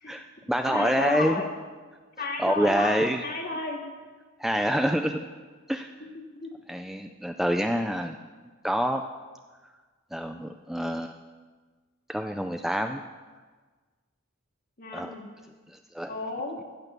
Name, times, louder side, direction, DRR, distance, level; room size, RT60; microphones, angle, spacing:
voice 1, 0.1-1.4 2.4-3.2 4.4-5.2 5.7-5.9 6.7-8.2 8.6-9.0 10.1-11.1 12.1-13.0 14.9-15.1 15.7-16.1, equal, ahead, 6 dB, 0.3 m, -27 dB
voice 2, 0.7-1.5 2.2-3.8 6.3-6.5 14.8-15.2 16.1-16.6, left 3 dB, 45° left, 0 dB, 2.1 m, -32 dB
15.5 x 6.0 x 6.9 m, 1.4 s
head